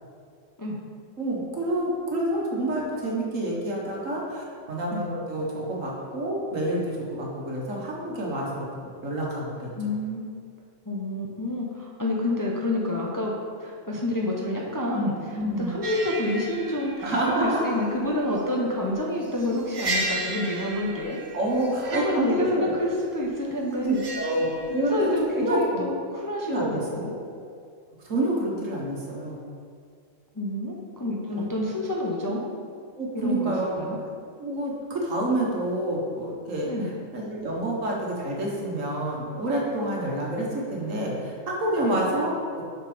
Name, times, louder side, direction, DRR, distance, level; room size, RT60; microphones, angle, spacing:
voice 1, 1.2-9.7 14.9-15.1 15.4-15.7 17.0-17.7 21.3-22.7 23.7-25.8 26.5-26.8 28.0-29.4 31.3-31.5 33.0-33.8 34.4-36.7 37.1-42.6, right 1 dB, 75° right, -3 dB, 1.8 m, -28 dB
voice 2, 9.8-10.2 10.8-15.1 15.6-17.1 17.4-21.2 21.9-24.0 24.9-27.1 30.3-32.5 33.1-34.0 36.6-37.0 41.8-42.0, left 1 dB, 20° left, -2 dB, 0.7 m, -28 dB
sound 1, 15.8-25.6, right 2 dB, 45° right, 1.1 m, -35 dB
6.6 x 6.1 x 5.1 m, 2.3 s
omnidirectional pair, 1.4 m